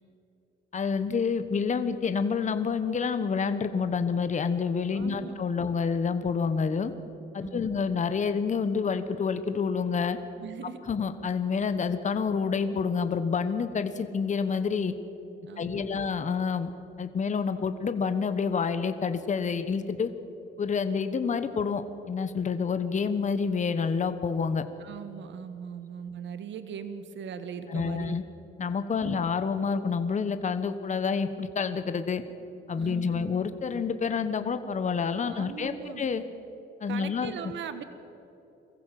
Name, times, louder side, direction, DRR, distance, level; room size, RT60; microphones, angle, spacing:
voice 1, 0.7-6.9 7.3-10.2 10.9-14.9 15.6-16.7 17.0-20.1 20.6-21.8 22.1-24.6 27.7-28.2 28.6-32.2 32.7-36.2 36.8-37.5, left 5 dB, 35° left, 10 dB, 1.1 m, -28 dB
voice 2, 4.9-5.3 7.4-7.8 10.4-10.8 15.5-16.0 24.8-28.2 29.0-29.2 32.8-33.4 35.3-36.1 36.9-37.8, right 7 dB, 70° right, 10 dB, 1.2 m, -40 dB
22.5 x 15.0 x 7.7 m, 3.0 s
cardioid pair, 90°, 20 cm